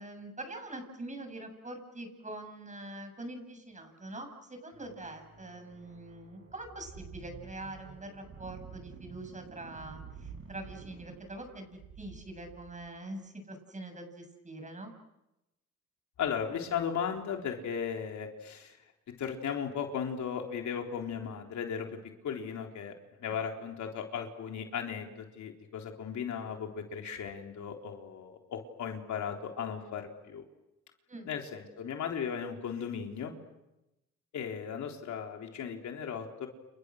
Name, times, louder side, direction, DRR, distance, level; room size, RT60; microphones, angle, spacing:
voice 1, 0.0-14.9 23.2-23.4 31.1-31.3, right 2 dB, 25° right, 6 dB, 7.5 m, -44 dB
sound 1, 4.7-11.7, right 4 dB, 45° right, 7.3 m, -54 dB
sound 2, 6.8-12.9, right 7 dB, 80° right, 7.7 m, -51 dB
voice 2, 16.2-18.8 19.1-22.0 22.2-22.9 23.2-30.4 31.3-33.3 34.3-36.5, left 7 dB, 70° left, 2 dB, 3.8 m, -36 dB
29.5 x 29.5 x 6.5 m, 0.93 s
cardioid pair, 90°, 30 cm